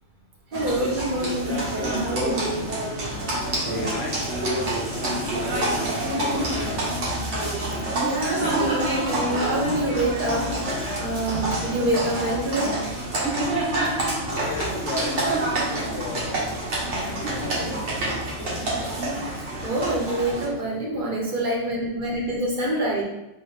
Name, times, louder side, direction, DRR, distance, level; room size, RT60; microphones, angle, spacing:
voice 1, 0.5-2.7 7.5-7.7 8.0-10.7 11.0-12.8 19.6-23.0, right 1 dB, 50° right, -2 dB, 0.9 m, -26 dB
Livestock farm animals working animals, 0.5-20.4, right 1 dB, 90° right, 1.3 m, -27 dB
voice 2, 3.1-6.8 13.8-16.7 17.0-19.4 20.0-21.2, left 4 dB, 70° left, 3 dB, 0.8 m, -38 dB
4.0 x 2.7 x 3.2 m, 0.95 s
omnidirectional pair, 1.1 m